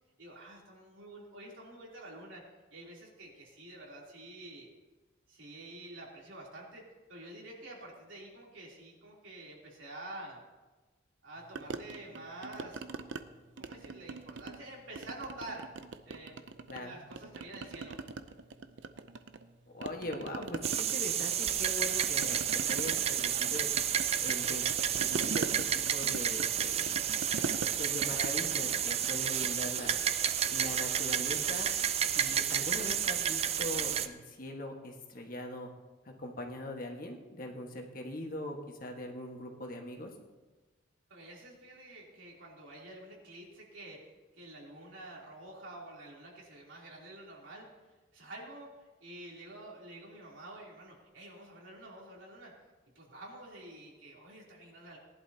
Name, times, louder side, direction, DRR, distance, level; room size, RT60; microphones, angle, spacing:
voice 1, 0.2-2.4 2.7-4.7 5.3-6.8 7.1-10.4 11.2-12.8 13.6-15.7 16.1-16.4 16.7-18.0 41.1-47.7 48.1-52.5 53.0-55.0, right 1 dB, 90° right, -3 dB, 3.3 m, -48 dB
sound 1, 11.6-13.2 13.6-14.6 15.0-16.8 17.1-19.5 19.8-29.6, right 4 dB, 75° right, 0.6 m, -42 dB
voice 2, 19.7-23.7 24.2-27.0 27.8-29.9 30.5-31.7 32.1-35.7 36.2-40.1, left 1 dB, 45° left, 2 dB, 1.5 m, -41 dB
sound 2, 20.6-34.1, right 9 dB, 30° right, 0.4 m, -31 dB
19.0 x 11.0 x 2.9 m, 1.2 s
head